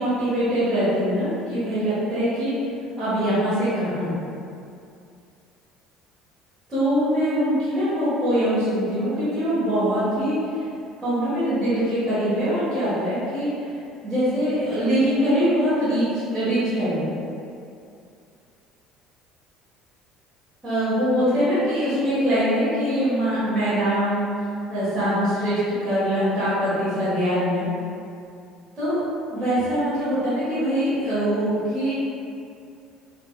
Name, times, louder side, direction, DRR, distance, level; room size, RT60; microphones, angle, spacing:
voice 1, 0.0-2.5 3.0-4.1 6.7-10.6 11.0-13.7 14.0-17.0 20.6-24.2 24.7-27.6 28.8-29.0 29.3-31.9, equal, 30° right, -14 dB, 1.3 m, -23 dB
3.3 x 2.6 x 2.2 m, 2.5 s
figure-of-eight pair, 60°, 0 cm